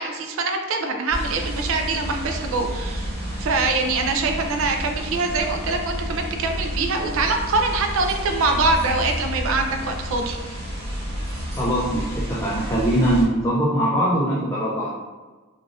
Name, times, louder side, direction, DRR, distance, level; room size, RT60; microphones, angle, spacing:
voice 1, 0.0-3.1 3.4-10.6, right 3 dB, 65° right, 4 dB, 0.4 m, -24 dB
sound 1, 1.1-13.2, equal, 25° right, 1.1 m, -30 dB
voice 2, 11.6-14.9, right 1 dB, 15° left, -6 dB, 0.3 m, -22 dB
3.3 x 2.4 x 2.5 m, 1.3 s
head